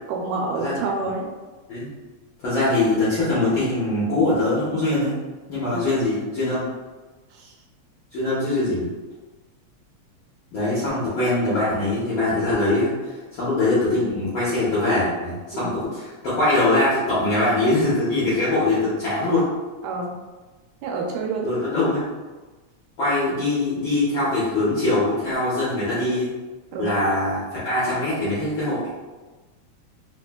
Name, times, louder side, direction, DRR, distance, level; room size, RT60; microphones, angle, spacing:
voice 1, 0.1-1.3 5.7-5.9 7.3-7.5 15.5-15.7 19.8-20.1 20.8-21.5 26.7-26.9, right 3 dB, 80° right, 0 dB, 1.9 m, -28 dB
voice 2, 2.4-5.1 5.5-6.7 8.1-8.9 10.5-12.9 13.3-19.5 21.4-22.0 23.0-26.3 26.8-28.8, left 2 dB, 65° left, -11 dB, 1.2 m, -22 dB
4.2 x 3.0 x 2.2 m, 1.3 s
omnidirectional pair, 3.4 m